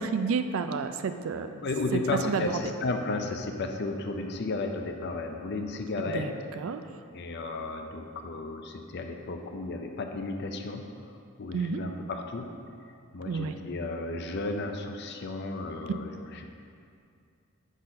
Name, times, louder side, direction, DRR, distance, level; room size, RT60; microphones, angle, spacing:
voice 1, 0.0-1.5 2.2-2.4 6.0-6.8 11.5-11.8 13.3-13.5, right 5 dB, 65° right, 9 dB, 0.3 m, -30 dB
voice 2, 1.5-6.3 7.1-10.8 11.4-12.5 13.1-16.4, left 3 dB, 50° left, 4 dB, 0.5 m, -33 dB
6.3 x 4.0 x 5.2 m, 2.4 s
head